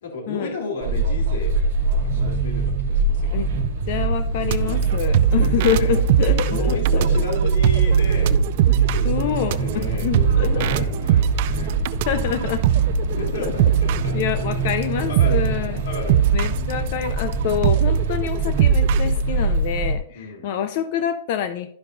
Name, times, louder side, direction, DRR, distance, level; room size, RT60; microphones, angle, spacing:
voice 1, 0.0-1.5 1.9-3.5 5.3-6.0 6.5-8.4 8.7-11.8 13.2-14.4 14.9-15.4 15.8-16.2 20.1-20.5, left 3 dB, 70° left, -1 dB, 2.5 m, -33 dB
sound 1, 0.8-19.9, right 3 dB, 55° right, 1.3 m, -23 dB
voice 2, 3.9-7.1 8.7-8.8 9.0-10.9 11.9-12.7 13.4-13.5 14.1-15.8 16.3-21.7, left 9 dB, 40° left, 10 dB, 0.4 m, -26 dB
sound 2, 4.5-14.1 14.7-14.8 15.2-15.5 15.9-19.1, right 11 dB, 40° right, 0.3 m, -20 dB
12.0 x 5.5 x 2.6 m, 0.68 s
supercardioid pair, 175°, 0 cm